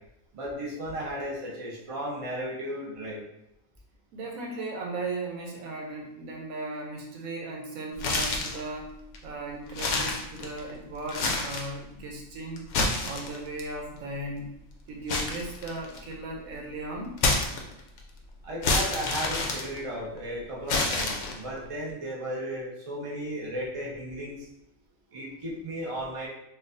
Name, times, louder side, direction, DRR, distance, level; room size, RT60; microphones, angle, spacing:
voice 1, 0.3-3.2 18.4-24.5 25.1-26.3, equal, 30° right, -4 dB, 0.8 m, -35 dB
voice 2, 4.1-8.9 9.2-12.7 13.0-14.5 14.9-17.2, right 2 dB, 90° right, 0 dB, 1.1 m, -37 dB
sound 1, 8.0-8.6 9.1-9.2 9.7-10.7 11.1-11.7 12.6-13.6 15.1-16.1 17.2-18.0 18.6-20.2 20.7-21.6, left 3 dB, 65° left, 0.9 m, -28 dB
4.5 x 2.4 x 2.5 m, 0.83 s
omnidirectional pair, 1.4 m